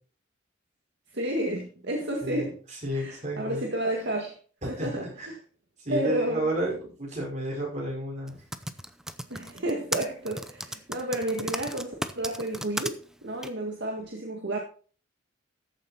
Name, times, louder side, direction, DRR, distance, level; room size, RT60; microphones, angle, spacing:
voice 1, 1.1-2.6 2.9-4.4 4.6-5.4 5.9-6.4 9.3-14.6, right 1 dB, 60° right, 1 dB, 1.9 m, -31 dB
voice 2, 2.2-3.6 4.8-5.3 5.8-8.4, right 1 dB, 35° right, -2 dB, 5.6 m, -32 dB
Typing, 8.3-12.9 13.4-13.5, right 1 dB, 5° right, 0.6 m, -34 dB
13.5 x 7.6 x 4.3 m, 0.40 s
head